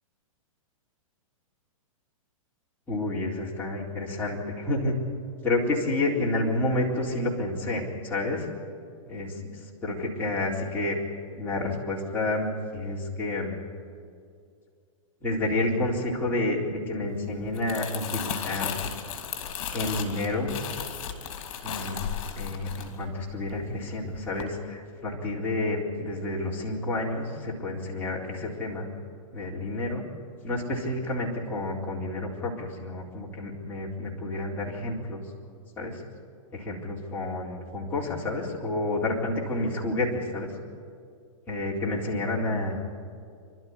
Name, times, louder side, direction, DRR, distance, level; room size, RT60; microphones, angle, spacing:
voice 1, 2.9-5.0 5.4-8.5 9.1-9.4 9.8-11.0 11.3-13.6 15.2-18.8 19.7-20.6 21.6-22.1 22.4-28.9 29.3-30.0 30.4-35.2 35.8-36.0 36.5-40.5 41.5-42.8, left 2 dB, 10° left, -5 dB, 4.1 m, -29 dB
Crumpling crinkling, 17.4-23.8 24.1-24.4, left 8 dB, 50° left, 3.0 m, -35 dB
26.5 x 12.5 x 9.8 m, 2.3 s
hypercardioid pair, 145°, 18 cm